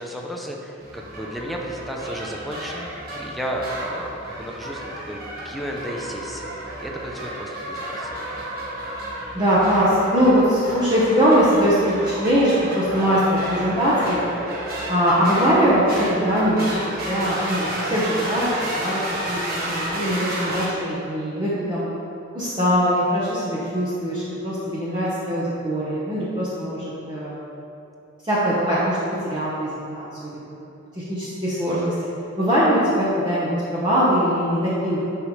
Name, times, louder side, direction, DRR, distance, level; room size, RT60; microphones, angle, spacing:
voice 1, 0.0-5.2 5.4-6.5 6.8-8.3, equal, ahead, -1 dB, 0.7 m, -33 dB
sound 1, 0.8-20.7, right 1 dB, 45° right, 1.4 m, -31 dB
voice 2, 9.3-14.2 14.9-16.8 17.0-19.0 19.3-21.9 22.3-27.3 28.2-29.0 29.3-30.3 31.0-31.9 32.4-35.0, equal, 20° right, -10 dB, 1.1 m, -21 dB
10.0 x 5.5 x 3.3 m, 2.8 s
head